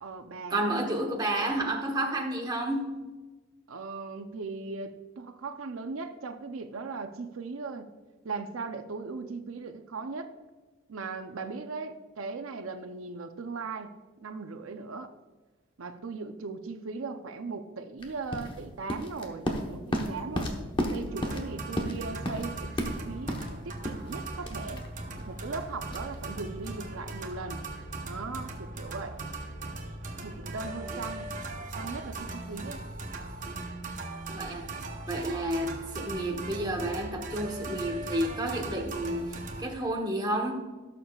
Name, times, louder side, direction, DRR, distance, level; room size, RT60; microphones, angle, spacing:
voice 1, 0.0-1.0 3.7-7.9 8.2-10.3 10.9-13.9 14.2-15.1 15.8-20.6 20.9-23.3 23.6-24.8 25.3-27.6 28.0-29.2 30.2-31.3 31.7-32.8, right 4 dB, 80° right, 8 dB, 0.6 m, -38 dB
voice 2, 0.5-3.1 34.3-34.7 35.1-40.7, right 1 dB, 20° right, 1 dB, 1.0 m, -31 dB
sound 1, 18.0-26.8, equal, 25° left, 1.0 m, -34 dB
sound 2, 21.1-39.7, right 2 dB, 40° right, 0.9 m, -39 dB
17.0 x 6.8 x 2.4 m, 1.2 s
head